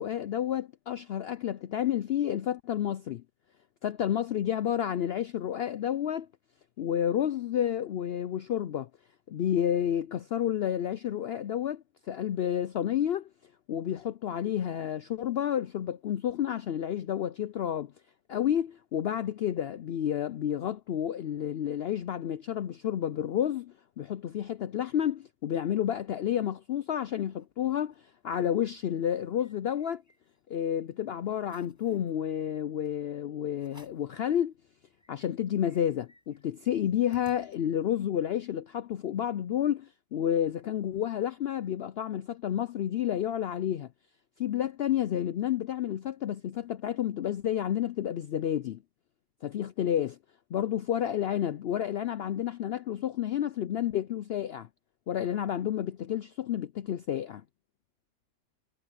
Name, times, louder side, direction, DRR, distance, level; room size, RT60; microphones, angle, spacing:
voice 1, 0.0-3.2 3.8-6.3 6.8-8.9 9.3-13.3 13.7-17.9 18.3-27.9 28.2-30.0 30.5-34.5 35.1-43.9 44.4-48.8 49.4-50.2 50.5-54.7 55.1-57.4, left 10 dB, 70° left, 0.6 m, -30 dB
sound 1, 26.9-27.5 27.9-28.0 28.2-28.6 29.0-30.6 31.0-31.1 31.4-32.1 32.8-33.0 33.6-34.2 34.6-34.7 34.9-38.0, equal, 10° left, 5.7 m, -61 dB
omnidirectional pair, 1.5 m